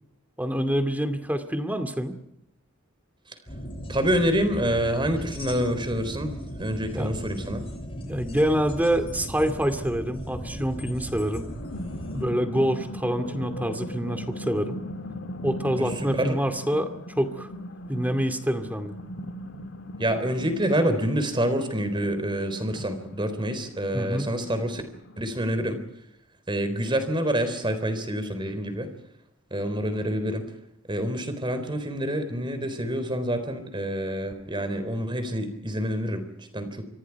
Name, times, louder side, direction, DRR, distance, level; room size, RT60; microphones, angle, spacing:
voice 1, 0.4-2.2 6.9-7.1 8.0-11.5 12.1-14.8 15.4-17.5 17.9-19.0 23.9-24.3, equal, 10° right, 8 dB, 2.4 m, -26 dB
sound 1, 3.5-12.2, equal, 25° left, 6.8 m, -37 dB
voice 2, 3.9-6.3 6.6-7.6 15.8-16.4 20.0-24.8 25.2-25.8 26.5-28.9 29.5-30.4 30.9-36.3 36.5-36.7, equal, 25° right, 9 dB, 4.0 m, -27 dB
sound 2, 11.2-25.5, left 1 dB, 60° left, 1.9 m, -39 dB
29.5 x 26.0 x 4.8 m, 0.80 s
head